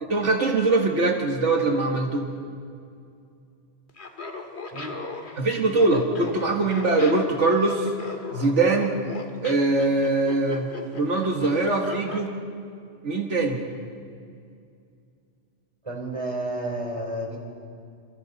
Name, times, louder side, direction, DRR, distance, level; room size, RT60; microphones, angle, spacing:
voice 1, 0.0-2.3 5.4-7.9 8.3-9.0 9.4-10.7 10.9-12.3 13.0-13.6, right 3 dB, 80° right, 2 dB, 1.9 m, -22 dB
Laughter, 3.9-12.3, left 3 dB, 65° left, 2.0 m, -38 dB
voice 2, 15.8-17.4, right 1 dB, 25° right, 0 dB, 3.8 m, -31 dB
28.0 x 27.5 x 4.1 m, 2.4 s
omnidirectional pair, 1.2 m